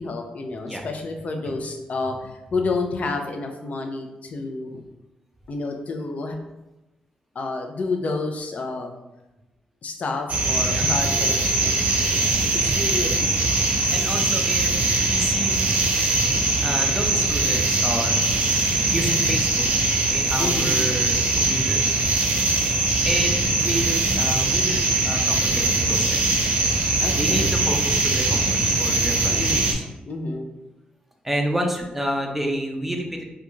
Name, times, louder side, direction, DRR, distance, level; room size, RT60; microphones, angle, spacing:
voice 1, 0.0-4.8 5.5-6.4 7.4-8.9 9.8-13.6 20.4-20.8 27.0-27.6 29.3-29.7 30.1-30.5, left 3 dB, 55° left, 4 dB, 0.4 m, -30 dB
sound 1, 10.3-29.7, right 2 dB, 60° right, 0.6 m, -21 dB
voice 2, 13.9-14.7 15.1-15.7 16.6-18.1 18.9-19.7 20.1-21.8 23.0-26.2 27.1-29.4 29.7-29.8 31.2-33.2, right 1 dB, 5° right, 2 dB, 0.5 m, -29 dB
2.4 x 2.2 x 3.0 m, 1.0 s
cardioid pair, 75°, 3 cm